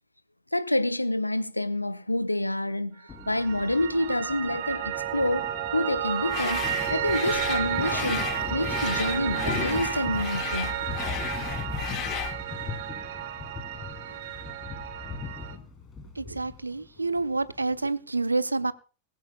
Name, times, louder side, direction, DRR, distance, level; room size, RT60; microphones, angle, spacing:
voice 1, 0.5-10.8 14.1-14.2, left 1 dB, 85° left, 0.8 m, -28 dB
Thunder, 3.1-17.9, left 5 dB, 20° left, 2.6 m, -39 dB
Piano, 3.2-15.6, right 12 dB, 50° right, 1.7 m, -32 dB
sound 1, 6.3-12.4, left 10 dB, 35° left, 1.5 m, -35 dB
voice 2, 16.2-18.7, right 3 dB, 80° right, 0.6 m, -28 dB
20.0 x 15.0 x 2.3 m
figure-of-eight pair, 90°, 0 cm